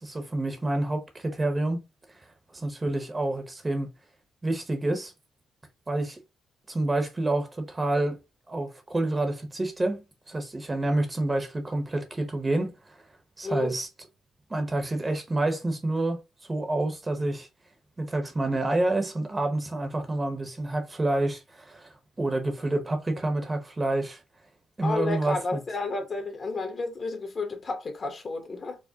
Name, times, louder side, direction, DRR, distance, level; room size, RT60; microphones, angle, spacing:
voice 1, 0.0-1.8 2.5-3.9 4.4-5.1 5.9-6.2 6.7-8.2 8.5-12.7 13.4-13.9 14.5-16.2 16.5-17.5 18.0-24.2 24.8-25.6, right 2 dB, 20° right, 0.8 m, -28 dB
voice 2, 13.4-13.7 24.8-28.8, left 3 dB, 40° left, 1.1 m, -31 dB
4.7 x 2.1 x 2.7 m
cardioid pair, 90°, 0 cm